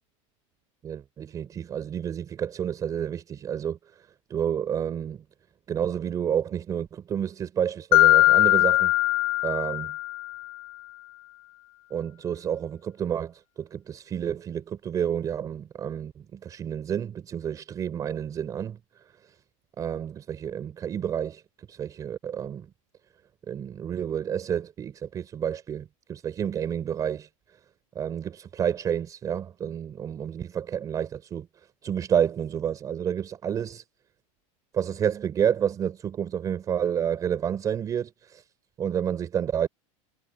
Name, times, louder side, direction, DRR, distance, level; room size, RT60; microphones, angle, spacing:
voice 1, 0.8-3.8 4.3-5.2 5.7-8.9 9.4-9.9 11.9-18.8 19.8-21.4 21.7-22.7 23.5-27.3 28.0-31.5 31.8-33.8 34.7-38.4 38.8-39.7, right 8 dB, 20° right, 3.8 m, -29 dB
Mallet percussion, 7.9-10.5, left 18 dB, 50° left, 1.4 m, -20 dB
supercardioid pair, 170°, 17 cm